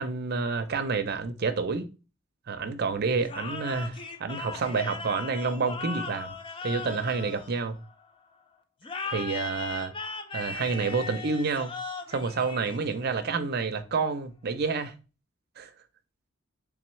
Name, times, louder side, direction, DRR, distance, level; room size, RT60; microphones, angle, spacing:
voice 1, 0.0-1.9 2.5-6.3 6.6-7.8 9.1-9.9 10.3-11.7 12.1-14.9 15.6-15.7, right 4 dB, 50° right, 0.6 m, -29 dB
sound 1, 3.2-8.1 8.8-13.2, left 4 dB, 25° left, 0.5 m, -38 dB
3.6 x 3.5 x 3.0 m
head